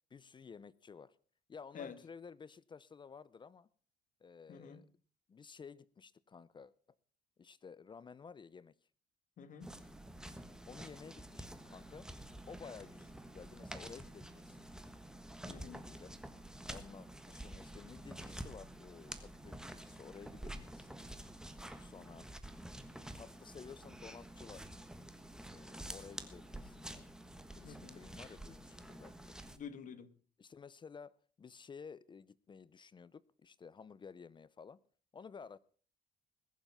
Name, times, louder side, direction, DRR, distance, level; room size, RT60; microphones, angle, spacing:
voice 1, 0.1-1.2 1.5-3.7 4.2-4.9 5.3-6.7 7.4-8.7 10.7-12.1 12.5-14.7 15.4-16.1 16.7-21.0 21.8-22.3 23.1-24.7 25.5-27.1 27.5-29.2 30.4-34.8 35.1-35.6, left 6 dB, 30° left, 0.6 m, -53 dB
voice 2, 4.5-4.8 9.4-9.8 15.5-15.8 27.6-28.0 29.4-30.1, left 6 dB, 50° left, 1.6 m, -49 dB
sound 1, 9.6-29.6, right 1 dB, 5° right, 1.4 m, -49 dB
20.5 x 7.2 x 5.8 m
cardioid pair, 110°, 17 cm